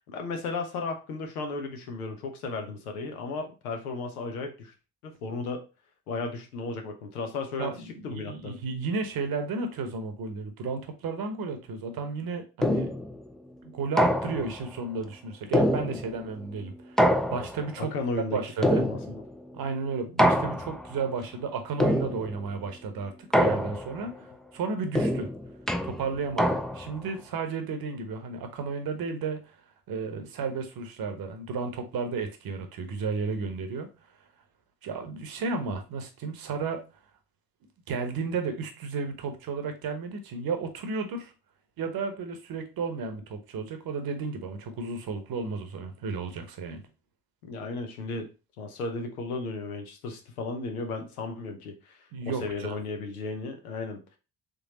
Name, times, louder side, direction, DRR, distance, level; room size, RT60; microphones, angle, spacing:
voice 1, 0.1-4.7 5.0-5.6 6.1-7.7 8.0-8.5 17.8-19.2 47.4-48.3 48.6-54.0, left 3 dB, 90° left, 0.7 m, -35 dB
voice 2, 7.6-12.9 13.6-17.1 17.3-17.9 18.2-18.8 19.5-23.1 23.4-25.3 25.8-29.4 29.9-33.9 34.8-36.8 37.9-41.3 41.8-46.8 52.1-52.8, right 4 dB, 55° right, 1.0 m, -33 dB
sound 1, 12.6-13.2 14.0-14.6 15.5-16.3 17.0-17.8 18.6-19.3 20.2-20.9 21.8-22.5 23.3-24.1 25.0-27.0, equal, ahead, 0.4 m, -25 dB
3.8 x 3.3 x 2.8 m
hypercardioid pair, 40°, 43 cm